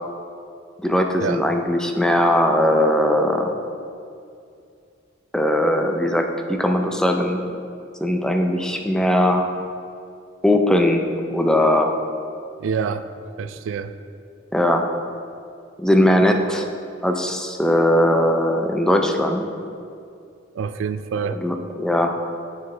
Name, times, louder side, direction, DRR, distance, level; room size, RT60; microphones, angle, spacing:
voice 1, 0.8-3.6 5.3-7.4 8.0-9.5 10.4-11.9 14.5-14.8 15.8-16.7 17.0-19.5 21.2-22.1, left 1 dB, 5° left, 3 dB, 0.4 m, -19 dB
voice 2, 12.6-13.1 13.4-13.9 20.6-21.4, right 6 dB, 70° right, 12 dB, 0.3 m, -26 dB
8.8 x 7.1 x 3.3 m, 2.4 s
head